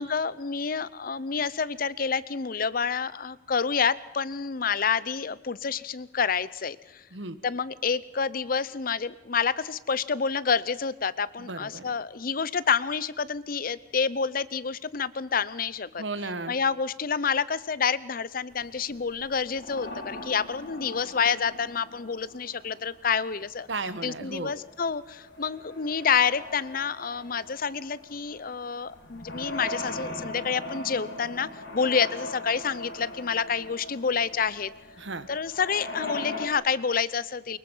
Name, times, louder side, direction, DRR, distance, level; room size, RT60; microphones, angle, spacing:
voice 1, 0.0-7.0 7.4-16.0 16.5-23.7 24.0-31.5 31.7-34.7 35.3-37.6, left 6 dB, 50° left, 18 dB, 0.7 m, -28 dB
voice 2, 11.4-11.9 16.0-16.5 23.7-24.5 35.0-35.3, right 3 dB, 85° right, 13 dB, 1.4 m, -34 dB
sound 1, 18.5-36.5, left 2 dB, 70° left, 4.1 m, -40 dB
24.0 x 22.0 x 5.6 m, 0.92 s
head